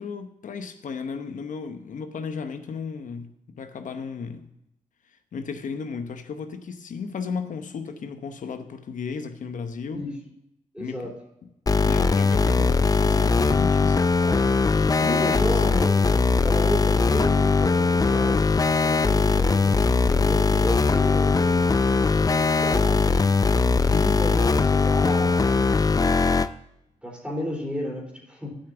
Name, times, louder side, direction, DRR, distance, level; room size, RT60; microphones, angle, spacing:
voice 1, 0.0-4.5 5.3-10.0 10.8-11.1 11.8-14.1 14.7-15.9 23.9-24.3, left 5 dB, 65° left, 9 dB, 0.9 m, -34 dB
voice 2, 10.7-11.1 13.1-13.3 14.2-14.6 15.1-18.5 18.8-23.3 23.7-26.0 27.0-28.6, equal, 5° right, -2 dB, 3.3 m, -33 dB
sound 1, 11.7-26.5, left 4 dB, 25° left, 0.5 m, -20 dB
8.4 x 5.9 x 6.7 m, 0.87 s
cardioid pair, 55°, 14 cm